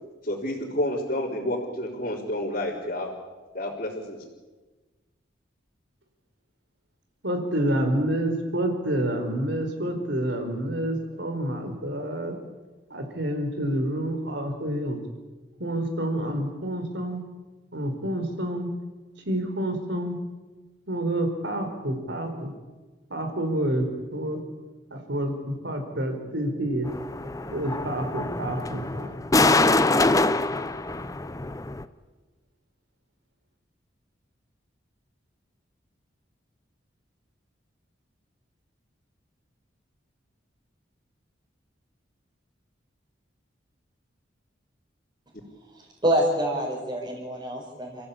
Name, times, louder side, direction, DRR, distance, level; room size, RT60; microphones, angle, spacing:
voice 1, 0.2-3.1 3.5-4.2, left 1 dB, 45° left, -6 dB, 3.8 m, -29 dB
voice 2, 7.2-12.3 12.9-15.0 15.6-17.2 17.7-18.7 19.2-20.2 20.9-22.5 23.1-24.4 24.9-26.9 27.5-29.1, right 1 dB, 65° right, 6 dB, 4.6 m, -28 dB
sound 1, 26.8-31.8, left 2 dB, 20° left, 0.8 m, -24 dB
voice 3, 45.7-48.1, right 1 dB, 25° right, -5 dB, 5.0 m, -26 dB
29.5 x 15.5 x 8.5 m, 1.3 s
head